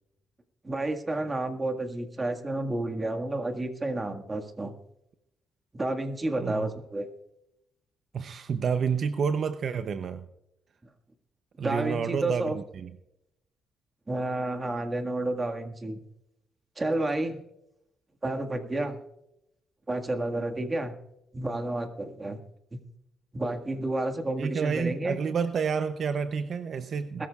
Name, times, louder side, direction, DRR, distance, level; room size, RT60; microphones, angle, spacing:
voice 1, 0.6-4.7 5.7-7.1 11.6-12.6 14.1-16.0 16.8-17.4 18.2-19.0 19.9-20.9 21.3-22.4 22.7-22.8 23.3-25.2 27.2-27.3, right 2 dB, 20° right, 5 dB, 1.7 m, -30 dB
voice 2, 6.4-6.7 8.1-10.2 11.6-12.9 24.4-27.3, right 6 dB, 55° right, 10 dB, 0.7 m, -29 dB
21.0 x 13.5 x 2.4 m, 0.86 s
cardioid pair, 90°, 0 cm